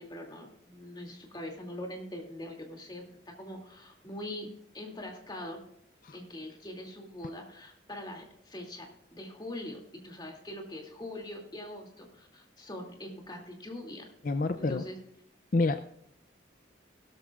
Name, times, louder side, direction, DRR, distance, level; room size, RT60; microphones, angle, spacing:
voice 1, 0.0-5.6 6.1-14.1 14.5-15.0, left 1 dB, 20° left, 1 dB, 2.5 m, -43 dB
voice 2, 14.2-14.8 15.5-15.8, left 3 dB, 45° left, 10 dB, 0.4 m, -28 dB
16.5 x 13.5 x 2.4 m, 0.77 s
head